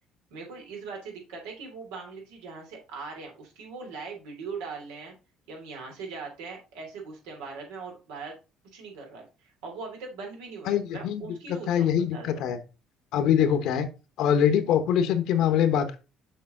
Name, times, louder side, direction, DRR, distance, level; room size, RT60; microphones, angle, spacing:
voice 1, 0.3-5.1 5.5-8.3 8.7-12.4, right 4 dB, 85° right, 1 dB, 3.0 m, -40 dB
voice 2, 10.7-11.2 11.7-12.6 13.1-13.9 14.2-16.0, left 9 dB, 70° left, 9 dB, 1.1 m, -23 dB
6.7 x 5.1 x 3.8 m, 0.30 s
supercardioid pair, 80°, 0 cm